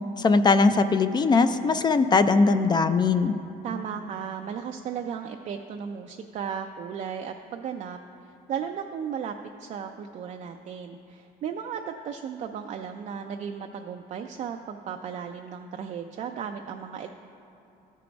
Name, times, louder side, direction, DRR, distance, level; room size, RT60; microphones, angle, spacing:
voice 1, 0.2-3.3, left 4 dB, 25° left, 10 dB, 0.3 m, -20 dB
voice 2, 3.6-9.3 9.6-17.1, right 7 dB, 45° right, 4 dB, 0.4 m, -35 dB
13.0 x 4.6 x 5.1 m, 2.9 s
cardioid pair, 110°, 17 cm